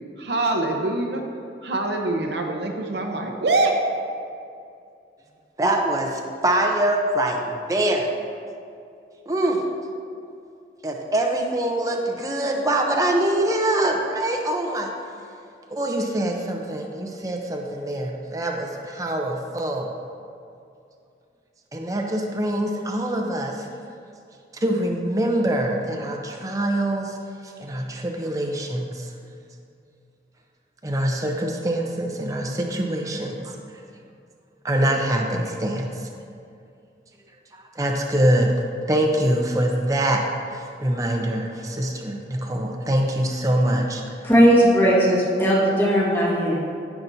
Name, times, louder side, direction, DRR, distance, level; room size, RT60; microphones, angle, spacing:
voice 1, 0.2-1.2 1.6-3.8, right 2 dB, 70° right, 1 dB, 0.8 m, -24 dB
voice 2, 5.6-8.1 9.3-9.6 10.8-14.9 15.7-19.9 21.7-23.7 24.5-27.2 27.4-29.1 30.8-33.6 34.6-36.1 37.5-38.5 38.9-40.2 40.5-44.0, right 1 dB, 20° right, 1 dB, 0.7 m, -24 dB
voice 3, 44.2-46.7, equal, 15° left, -6 dB, 1.6 m, -18 dB
14.5 x 5.9 x 2.7 m, 2.5 s
head